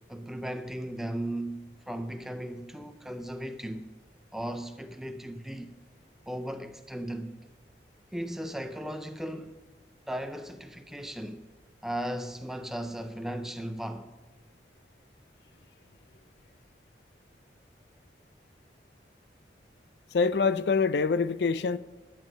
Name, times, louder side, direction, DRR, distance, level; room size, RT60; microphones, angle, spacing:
voice 1, 0.1-3.9 4.3-5.7 6.3-7.4 8.1-9.6 10.1-11.4 11.8-14.1, right 1 dB, ahead, 0.5 m, -36 dB
voice 2, 20.1-21.8, left 4 dB, 70° left, 0.4 m, -25 dB
11.5 x 7.1 x 6.2 m
head